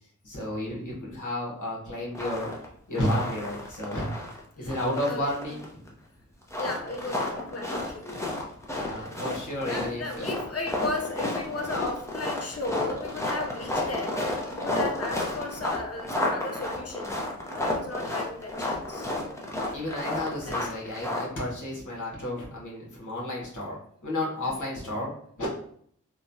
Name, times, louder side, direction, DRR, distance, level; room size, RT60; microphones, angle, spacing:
voice 1, 0.2-2.5 2.9-4.1 4.6-5.9 8.7-10.3 19.7-23.7 24.0-25.1 25.4-25.5, left 1 dB, 70° left, -4 dB, 1.2 m, -32 dB
sound 1, 2.1-2.7 3.0-4.4 4.7-5.9 6.4-21.3, left 1 dB, 10° left, 0.7 m, -32 dB
voice 2, 4.6-5.6 6.6-8.2 9.0-9.1 9.7-14.2 14.5-17.2 17.5-19.1 20.4-21.2, left 2 dB, 50° left, 3 dB, 0.6 m, -35 dB
3.0 x 2.2 x 2.6 m, 0.63 s
wide cardioid pair, 55°, 32 cm